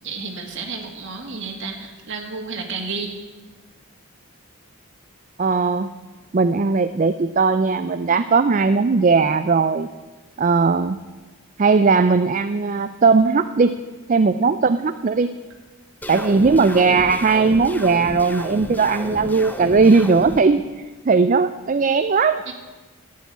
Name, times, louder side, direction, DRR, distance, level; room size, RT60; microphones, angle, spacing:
voice 1, 0.0-3.2 22.5-22.6, right 4 dB, 55° right, 1 dB, 1.9 m, -31 dB
voice 2, 5.4-5.9 6.3-9.9 10.4-11.0 11.6-13.8 14.1-15.4 16.1-20.7 21.1-22.4, right 4 dB, 35° right, 11 dB, 0.4 m, -18 dB
sound 1, 16.0-20.4, equal, 10° left, 0.7 m, -33 dB
12.0 x 8.4 x 9.3 m, 1.3 s
head